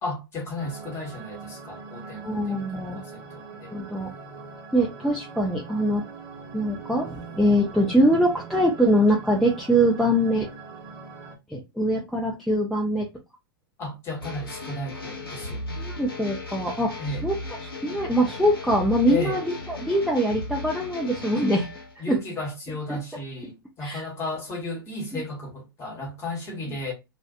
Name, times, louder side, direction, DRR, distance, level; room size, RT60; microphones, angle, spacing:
voice 1, 0.0-3.7 13.8-15.9 17.0-17.3 19.1-19.4 22.0-26.9, left 2 dB, 20° left, 1.1 m, -34 dB
sound 1, 0.6-11.4, right 4 dB, 35° right, 1.0 m, -42 dB
voice 2, 2.2-3.0 3.7-4.1 4.7-6.0 6.5-10.5 11.5-13.1 15.8-16.9 17.2-17.3 17.8-21.7 22.1-22.2 22.9-23.0 23.8-24.0, equal, ahead, 0.5 m, -23 dB
sound 2, 14.2-21.9, left 2 dB, 75° left, 0.8 m, -36 dB
2.4 x 2.2 x 2.3 m
figure-of-eight pair, 105°, 12 cm